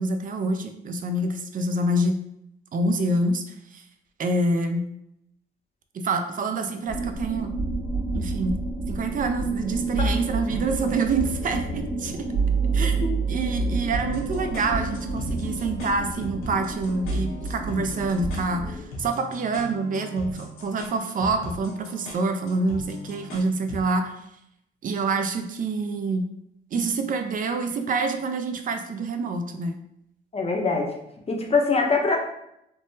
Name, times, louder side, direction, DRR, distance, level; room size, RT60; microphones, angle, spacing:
voice 1, 0.0-2.2 2.7-3.4 3.7-3.8 4.2-4.9 5.9-7.5 8.1-8.6 8.9-12.3 12.7-13.0 13.3-24.1 24.8-26.3 26.7-29.8, right 3 dB, 45° right, 7 dB, 0.4 m, -26 dB
sound 1, 6.9-18.9, right 3 dB, 25° right, 1.3 m, -28 dB
sound 2, 13.9-23.9, left 1 dB, 85° left, 0.8 m, -40 dB
voice 2, 30.3-30.9 31.3-32.2, left 4 dB, 30° left, 1 dB, 0.6 m, -23 dB
3.6 x 2.0 x 2.6 m, 0.78 s
cardioid pair, 90°, 20 cm